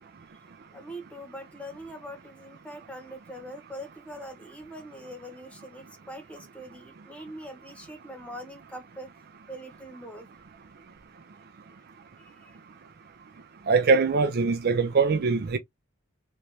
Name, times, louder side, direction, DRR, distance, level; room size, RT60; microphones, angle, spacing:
voice 1, 0.7-9.1 9.5-10.3 12.2-12.6, equal, 5° left, 1.1 m, -43 dB
voice 2, 13.7-15.6, right 4 dB, 50° right, 0.5 m, -22 dB
3.2 x 3.1 x 2.7 m
head